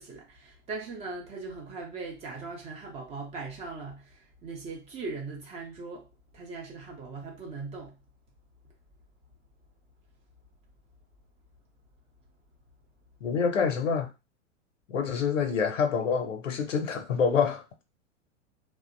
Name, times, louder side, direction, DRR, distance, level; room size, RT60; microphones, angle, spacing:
voice 1, 0.0-6.1 6.3-8.0, right 3 dB, 15° right, 0.4 m, -39 dB
voice 2, 13.2-14.1 14.9-17.6, left 6 dB, 75° left, 0.7 m, -26 dB
2.7 x 2.1 x 2.5 m
figure-of-eight pair, 95°, 38 cm